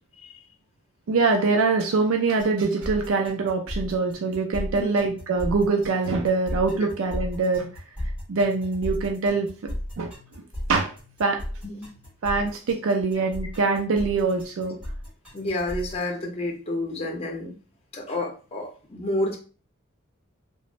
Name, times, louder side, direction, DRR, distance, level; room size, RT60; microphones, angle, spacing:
voice 1, 1.1-7.7 8.3-9.5 10.0-10.1 10.7-10.9 11.2-11.4 12.2-14.8, right 4 dB, 75° right, 2 dB, 0.4 m, -23 dB
sound 1, 2.4-16.0, left 1 dB, 5° right, 1.1 m, -35 dB
voice 2, 15.3-17.6 17.9-19.4, left 1 dB, 30° left, -1 dB, 0.7 m, -30 dB
3.0 x 2.0 x 2.4 m, 0.37 s
head